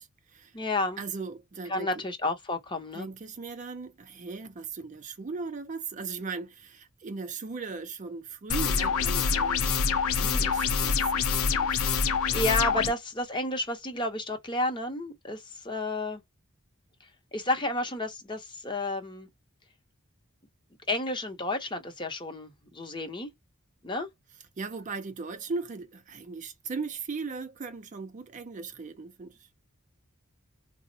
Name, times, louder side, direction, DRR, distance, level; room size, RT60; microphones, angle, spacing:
voice 1, 0.0-0.5 1.0-2.0 2.9-9.8 10.1-11.8 24.6-29.5, right 4 dB, 35° right, 0.4 m, -38 dB
voice 2, 0.5-1.0 1.7-3.1 12.3-16.2 17.0-19.3 20.9-23.3 23.8-24.1, left 2 dB, 20° left, 0.7 m, -31 dB
sound 1, 8.5-12.9, left 5 dB, 90° left, 0.5 m, -26 dB
3.6 x 2.0 x 2.6 m
head